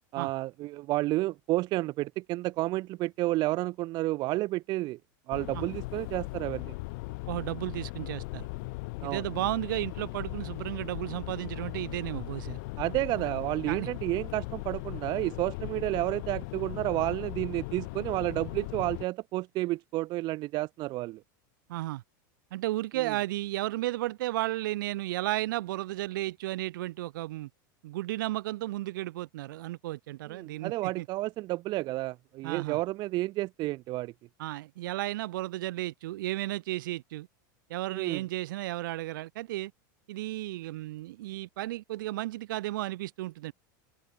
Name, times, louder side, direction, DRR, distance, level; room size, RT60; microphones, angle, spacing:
voice 1, 0.1-5.0 5.3-6.7 9.0-9.2 12.8-21.2 23.0-23.1 30.3-34.1 37.9-38.2, right 18 dB, 40° right, 0.7 m, -31 dB
sound 1, 5.3-19.0, left 26 dB, 60° left, 1.0 m, -38 dB
voice 2, 7.3-8.5 9.0-12.6 13.1-13.3 13.7-13.9 21.7-22.0 22.5-27.5 27.8-31.1 32.4-32.8 34.4-37.3 37.7-39.7 40.1-43.5, right 16 dB, 75° right, 2.8 m, -33 dB
supercardioid pair, 130°, 11 cm